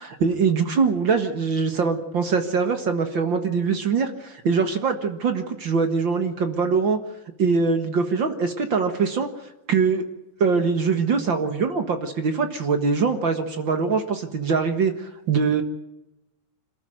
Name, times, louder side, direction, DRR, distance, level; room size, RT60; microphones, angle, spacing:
voice 1, 0.0-7.0 7.4-9.3 9.7-10.0 10.4-15.6, right 5 dB, 50° right, 7 dB, 1.6 m, -23 dB
27.0 x 13.5 x 9.3 m, 0.96 s
omnidirectional pair, 4.1 m